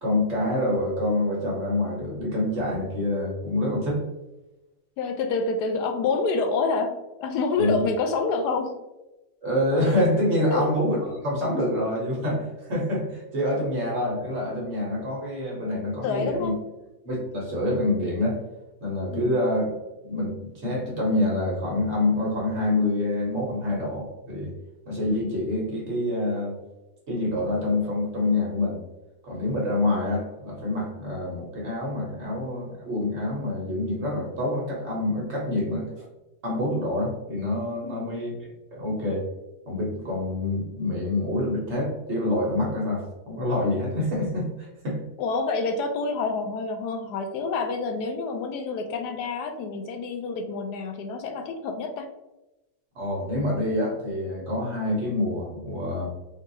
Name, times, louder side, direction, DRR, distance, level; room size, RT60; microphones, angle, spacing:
voice 1, 0.0-4.0 7.6-7.9 9.4-11.0 11.2-16.5 17.0-18.4 18.8-19.7 20.0-24.5 24.9-26.6 27.1-28.8 29.2-36.0 36.4-39.2 39.7-45.0 52.9-56.1, left 1 dB, 50° right, -3 dB, 1.2 m, -26 dB
voice 2, 5.0-7.0 7.2-8.7 10.5-10.7 16.0-16.5 19.1-19.4 37.8-38.3 45.2-52.1, left 4 dB, 85° left, 5 dB, 1.1 m, -27 dB
3.8 x 2.6 x 2.6 m, 1.0 s
omnidirectional pair, 1.7 m